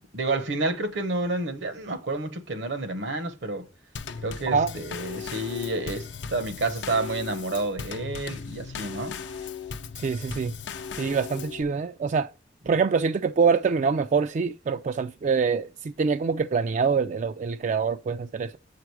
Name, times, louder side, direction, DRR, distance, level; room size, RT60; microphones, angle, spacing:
voice 1, 0.1-3.7 4.2-9.2, right 2 dB, 70° right, 1.0 m, -29 dB
Drum kit / Snare drum / Bass drum, 4.0-11.6, left 6 dB, 75° left, 0.6 m, -37 dB
voice 2, 10.0-10.5 10.9-12.3 12.7-18.6, right 5 dB, 40° right, 0.3 m, -25 dB
7.4 x 4.9 x 4.7 m
head